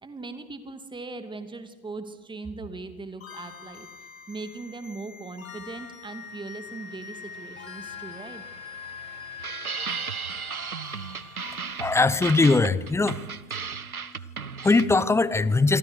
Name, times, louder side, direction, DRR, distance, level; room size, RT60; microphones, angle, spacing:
voice 1, 0.0-3.9 4.3-8.4, right 3 dB, 10° right, 9 dB, 2.6 m, -39 dB
sound 1, 3.2-11.9, left 8 dB, 70° left, 2.9 m, -43 dB
sound 2, 5.2-14.1, right 6 dB, 55° right, 6.6 m, -53 dB
sound 3, 9.4-15.1, right 6 dB, 90° right, 0.8 m, -35 dB
voice 2, 11.4-15.8, left 3 dB, 5° left, 18 dB, 0.8 m, -23 dB
27.5 x 23.0 x 6.6 m, 1.2 s
figure-of-eight pair, 90°, 42 cm